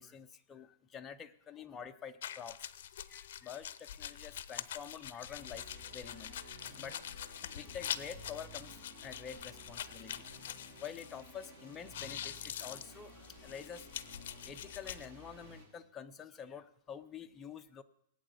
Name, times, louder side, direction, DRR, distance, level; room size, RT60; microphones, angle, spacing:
voice 1, 0.0-2.7 3.0-10.3 10.8-14.1 14.5-17.8, left 7 dB, 10° left, 7 dB, 0.6 m, -48 dB
sound 1, 2.2-11.5 11.7-15.1, left 10 dB, 55° left, 0.7 m, -45 dB
sound 2, 5.4-15.7, right 1 dB, 20° right, 3.2 m, -55 dB
18.5 x 8.7 x 8.0 m, 0.78 s
hypercardioid pair, 175°, 0 cm